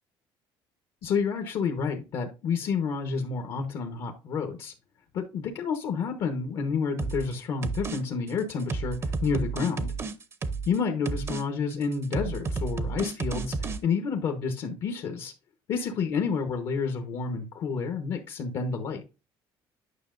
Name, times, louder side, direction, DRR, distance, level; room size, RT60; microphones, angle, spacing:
voice 1, 1.0-4.7 5.1-9.9 10.7-15.3 15.7-19.0, left 5 dB, 60° left, 4 dB, 1.2 m, -29 dB
sound 1, 7.0-7.3 7.6-8.0 8.3-10.8 11.1-11.4 11.7-13.8, right 4 dB, 30° right, 0.7 m, -31 dB
9.8 x 5.7 x 2.6 m, 0.30 s
cardioid pair, 140°, 9 cm